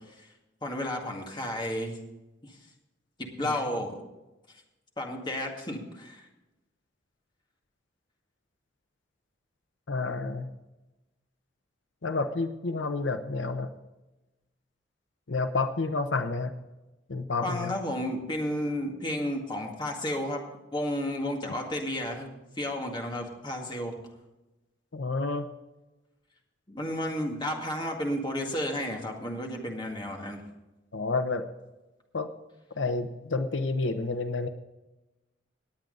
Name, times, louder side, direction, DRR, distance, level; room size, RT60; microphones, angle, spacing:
voice 1, 0.6-2.0 2.4-2.6 3.2-4.0 5.0-6.3 17.4-20.4 20.7-22.3 22.6-23.9 26.7-30.4, left 1 dB, 25° left, 1 dB, 2.0 m, -32 dB
voice 2, 9.9-10.5 12.0-13.7 15.3-16.5 17.1-17.7 24.9-25.5 30.9-31.4 32.1-32.3 32.8-34.5, left 3 dB, 85° left, 9 dB, 0.8 m, -29 dB
18.5 x 8.8 x 3.9 m, 1.0 s
head